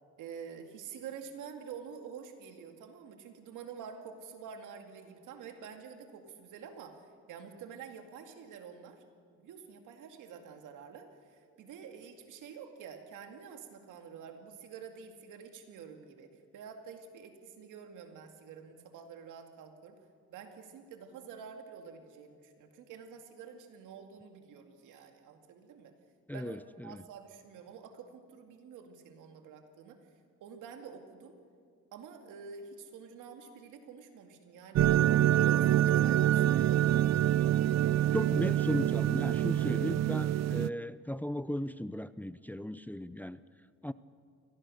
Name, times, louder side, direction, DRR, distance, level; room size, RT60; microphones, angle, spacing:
voice 1, 0.2-9.0 9.3-20.0 20.3-25.9 26.3-30.0 30.4-31.4 31.9-34.9 35.4-37.0, right 6 dB, 85° right, 5 dB, 2.4 m, -48 dB
voice 2, 26.3-27.0 38.1-43.4 43.8-43.9, left 1 dB, 5° left, 14 dB, 0.5 m, -36 dB
sound 1, 34.7-40.7, right 12 dB, 60° right, 0.6 m, -26 dB
24.0 x 17.5 x 6.5 m, 2.2 s
cardioid pair, 90°, 30 cm